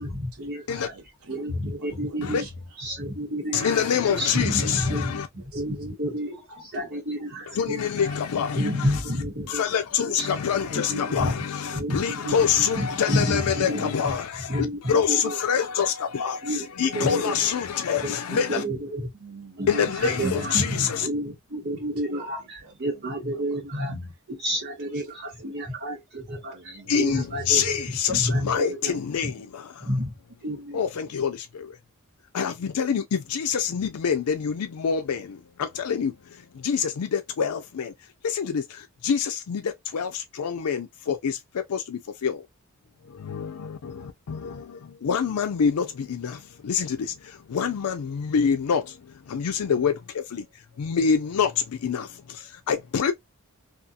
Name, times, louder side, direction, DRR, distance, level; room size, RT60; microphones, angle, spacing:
voice 1, 0.0-0.9 1.3-2.4 2.8-3.8 4.1-8.1 8.5-9.6 10.1-10.3 10.7-11.4 11.7-13.9 14.5-15.4 16.4-17.5 18.0-19.1 19.6-28.9 29.2-29.3 29.8-30.1 30.4-30.8, equal, 50° right, 1.1 m, -30 dB
voice 2, 0.9-2.8 3.5-3.7 4.0-4.1 5.1-7.3 8.0-8.1 9.4-10.0 10.5-10.8 16.6-17.1 18.9-20.0 21.5-21.6 22.0-23.8 24.5-25.0 25.4-25.7 26.3-27.4 30.9-31.2, right 4 dB, 75° right, 1.2 m, -51 dB
voice 3, 3.5-5.3 7.5-9.0 9.5-18.6 19.7-21.1 26.9-29.9 30.7-31.8 32.3-37.9 38.2-42.4 43.0-50.5 50.8-53.1, left 7 dB, 90° left, 0.4 m, -26 dB
2.7 x 2.4 x 2.3 m
head